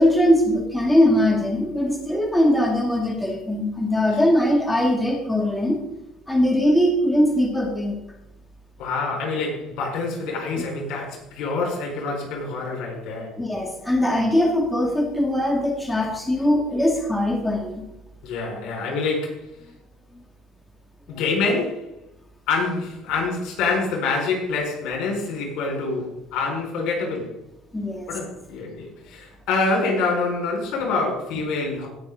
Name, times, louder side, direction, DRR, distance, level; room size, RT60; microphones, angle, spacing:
voice 1, 0.0-5.8 6.3-8.0 13.4-17.8 27.7-28.1, left 1 dB, 5° left, 0 dB, 2.1 m, -21 dB
voice 2, 8.8-13.3 18.2-19.5 21.1-21.9 22.5-27.3 28.1-31.9, left 3 dB, 70° left, 0 dB, 4.6 m, -26 dB
18.0 x 6.2 x 3.7 m, 0.85 s
supercardioid pair, 95°, 0 cm